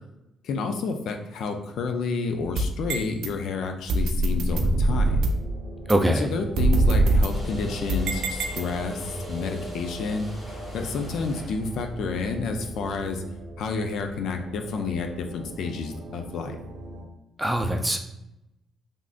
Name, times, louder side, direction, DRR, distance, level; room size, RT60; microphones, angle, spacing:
voice 1, 0.4-5.2 6.1-10.3 10.7-13.2 13.6-16.6, left 4 dB, 75° left, 5 dB, 0.4 m, -30 dB
sound 1, 2.4-3.3 3.9-5.5 5.9-6.0 6.6-9.0, right 2 dB, 80° right, 0.3 m, -23 dB
sound 2, 5.0-17.1, right 1 dB, 45° right, 0.7 m, -40 dB
voice 2, 5.9-6.3 17.4-18.0, right 1 dB, 10° right, 4 dB, 0.4 m, -22 dB
sound 3, 7.3-12.7, left 1 dB, 35° left, 1.1 m, -41 dB
3.4 x 2.5 x 2.4 m, 0.88 s
cardioid pair, 90°, 0 cm